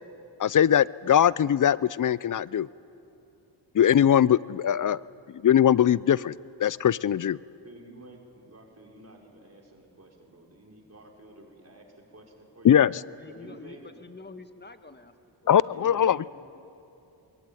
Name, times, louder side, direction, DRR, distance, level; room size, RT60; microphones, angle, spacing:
voice 1, 0.4-2.7 3.7-5.0 5.3-6.3 6.6-7.4 12.6-12.9 15.5-16.2, left 9 dB, 40° left, 21 dB, 0.6 m, -21 dB
voice 2, 7.6-12.8 13.3-13.9 15.6-16.3, right 2 dB, 30° right, -1 dB, 5.5 m, -50 dB
voice 3, 13.2-15.1 15.4-15.6, left 3 dB, 20° left, 8 dB, 1.9 m, -47 dB
26.0 x 22.0 x 9.1 m, 2.8 s
cardioid pair, 60°, 48 cm